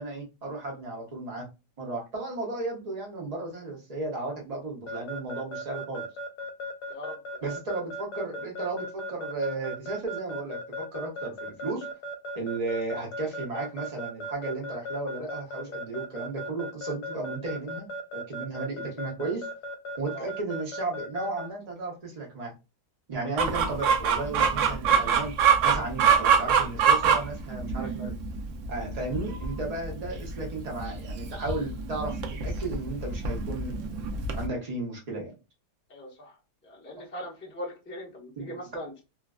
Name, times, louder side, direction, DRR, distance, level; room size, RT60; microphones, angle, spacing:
voice 1, 0.0-1.5 1.8-6.0 7.4-11.9 12.4-19.5 20.0-22.5 23.1-25.3 25.6-28.1 28.7-33.8 34.3-35.3 37.0-37.1 38.4-38.6, right 2 dB, 50° right, -1 dB, 0.4 m, -34 dB
Keyboard (musical) / Alarm, 4.9-21.5, equal, 75° left, 1.1 m, -36 dB
voice 2, 6.9-7.5 20.1-20.3 35.9-36.3 36.6-39.0, equal, 15° left, -3 dB, 0.4 m, -40 dB
Chicken rooster, 23.4-34.5, right 6 dB, 90° right, 0.6 m, -25 dB
3.0 x 2.3 x 2.3 m, 0.28 s
omnidirectional pair, 1.9 m